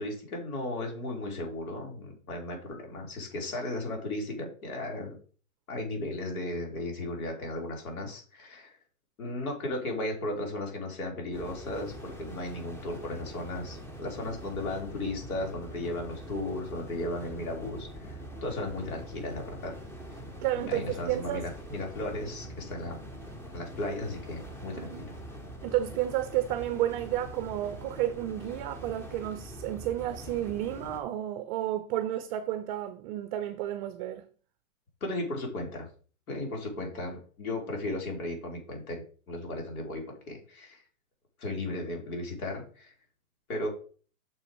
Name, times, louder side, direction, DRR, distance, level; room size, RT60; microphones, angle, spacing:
voice 1, 0.0-5.2 5.7-8.8 9.2-19.7 20.6-23.0 23.5-25.2 35.0-35.9 36.3-40.8 41.4-42.9 43.5-43.7, left 2 dB, 80° left, 3.6 m, -35 dB
sound 1, 11.3-31.0, equal, 5° left, 0.9 m, -44 dB
voice 2, 20.4-21.4 24.8-25.1 25.6-34.2, right 13 dB, 35° right, 0.6 m, -31 dB
6.1 x 4.8 x 5.2 m
hypercardioid pair, 140°, 43 cm